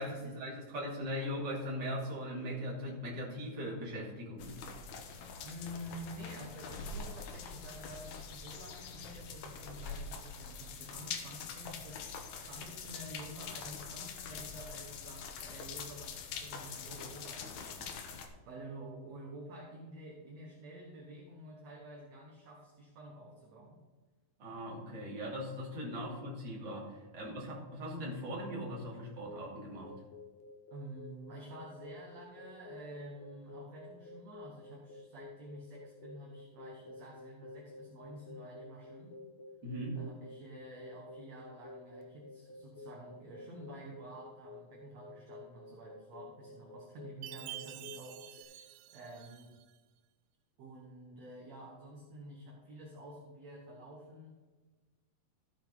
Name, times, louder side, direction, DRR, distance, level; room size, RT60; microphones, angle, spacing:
voice 1, 0.0-4.6 24.4-29.9 39.6-40.0, equal, 35° right, -4 dB, 3.1 m, -39 dB
sound 1, 4.4-18.3, left 5 dB, 70° left, 2.1 m, -44 dB
voice 2, 5.4-23.8 26.0-26.1 28.8-28.9 30.7-39.2 39.9-49.5 50.6-54.4, right 1 dB, 55° right, -2 dB, 2.4 m, -50 dB
sound 2, 29.3-48.4, left 3 dB, 85° left, 3.1 m, -52 dB
Chime, 47.2-49.7, right 15 dB, 85° right, 1.7 m, -48 dB
14.5 x 7.0 x 4.0 m, 1.3 s
omnidirectional pair, 4.1 m